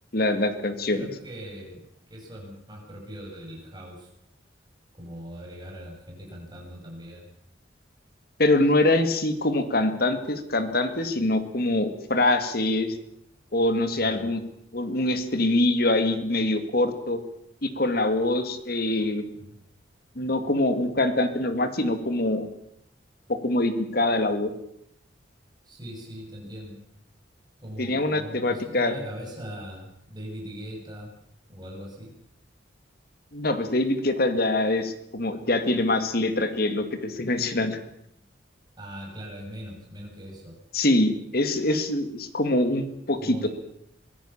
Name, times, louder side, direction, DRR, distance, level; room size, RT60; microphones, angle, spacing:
voice 1, 0.1-1.0 8.4-13.0 13.5-14.4 14.7-17.2 17.6-19.2 20.2-22.5 23.3-24.5 27.8-28.9 33.3-37.8 40.7-43.5, left 2 dB, 55° left, 9 dB, 2.2 m, -24 dB
voice 2, 0.9-4.1 4.9-7.3 13.9-14.3 19.3-19.5 25.6-26.8 27.6-31.1 31.5-32.1 38.8-40.6 43.2-43.5, equal, 20° right, 0 dB, 7.3 m, -40 dB
23.5 x 16.5 x 7.3 m, 0.76 s
head